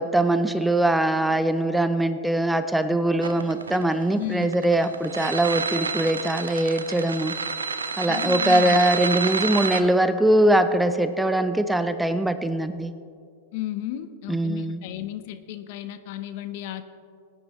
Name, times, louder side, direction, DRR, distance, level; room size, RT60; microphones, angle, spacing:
voice 1, 0.0-7.3 8.0-12.9 14.3-14.8, right 1 dB, 5° right, 11 dB, 0.5 m, -22 dB
sound 1, 3.2-9.8, right 5 dB, 90° right, 0.7 m, -28 dB
voice 2, 4.1-4.5 8.1-8.8 13.5-16.8, left 13 dB, 55° left, 10 dB, 0.8 m, -33 dB
19.0 x 9.8 x 3.1 m, 2.3 s
hypercardioid pair, 105°, 0 cm